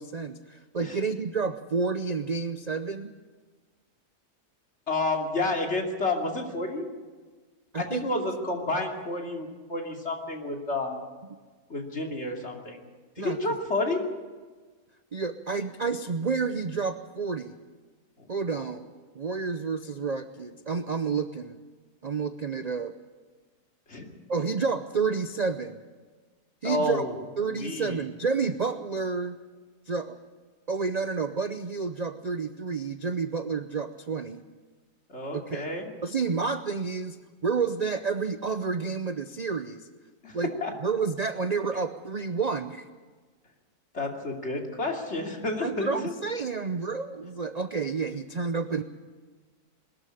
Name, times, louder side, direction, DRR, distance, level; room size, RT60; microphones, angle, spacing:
voice 1, 0.0-3.1 7.7-8.3 13.2-13.6 15.1-17.6 18.3-18.8 19.1-21.6 22.0-22.9 24.3-25.8 26.6-27.0 27.4-29.4 29.9-30.2 30.7-34.4 35.3-35.7 36.0-37.2 37.4-39.9 40.3-40.5 40.8-42.9 45.6-48.8, right 5 dB, 50° right, 10 dB, 0.5 m, -30 dB
voice 2, 4.9-6.9 7.8-11.0 11.7-12.8 13.2-14.1 18.2-18.7 23.9-24.1 26.6-27.1 27.5-28.0 35.1-35.9 40.2-40.7 43.9-46.1, left 2 dB, 40° left, 1 dB, 3.1 m, -30 dB
21.0 x 13.5 x 9.9 m, 1.4 s
omnidirectional pair, 1.7 m